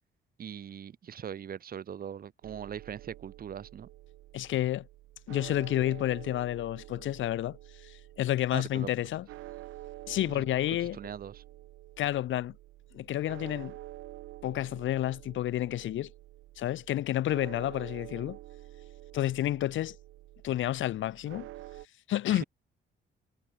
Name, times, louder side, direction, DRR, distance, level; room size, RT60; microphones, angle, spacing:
voice 1, 0.4-3.9 8.5-8.9 10.3-10.4 10.8-11.4 22.3-22.4, right 8 dB, 50° right, 1.0 m, -41 dB
sound 1, 2.4-21.9, right 16 dB, 90° right, 1.4 m, -48 dB
voice 2, 4.3-4.9 5.3-9.3 10.1-11.0 12.0-12.5 12.9-13.8 14.4-16.1 16.6-18.4 19.1-20.0 20.4-21.5 22.1-22.4, left 13 dB, 75° left, 1.3 m, -30 dB
cardioid pair, 90°, 20 cm